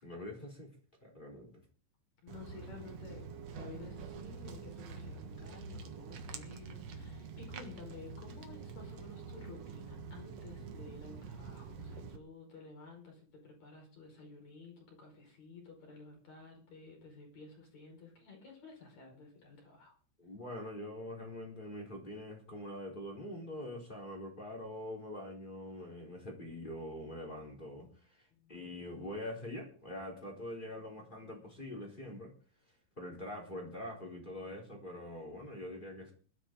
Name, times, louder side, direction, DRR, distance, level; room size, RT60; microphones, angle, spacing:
voice 1, 0.0-0.7 1.0-1.5 20.2-32.3 33.0-36.1, left 1 dB, 10° left, 3.3 m, -44 dB
voice 2, 2.2-19.9 28.3-28.7, left 4 dB, 35° left, 6.0 m, -53 dB
Walk footsteps, 2.3-12.2, right 5 dB, 80° right, 1.4 m, -46 dB
21.5 x 13.0 x 3.8 m
omnidirectional pair, 5.4 m